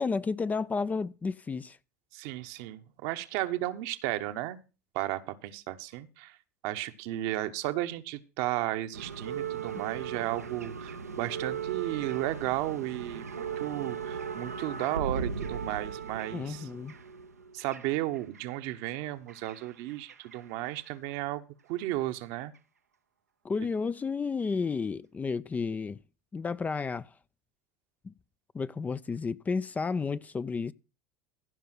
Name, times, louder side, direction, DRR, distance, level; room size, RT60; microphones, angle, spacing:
voice 1, 0.0-1.8 16.3-16.9 23.4-26.0 26.3-27.1 28.0-28.1 28.5-30.7, left 4 dB, 20° left, 0.5 m, -32 dB
voice 2, 2.1-4.6 4.9-6.4 6.6-16.7 17.5-21.4 21.7-22.5, right 15 dB, 60° right, 1.0 m, -34 dB
sound 1, 8.9-18.4 19.3-20.4 20.6-20.9 21.8-21.9, right 6 dB, 90° right, 0.9 m, -37 dB
16.0 x 5.5 x 6.1 m
hypercardioid pair, 80°, 8 cm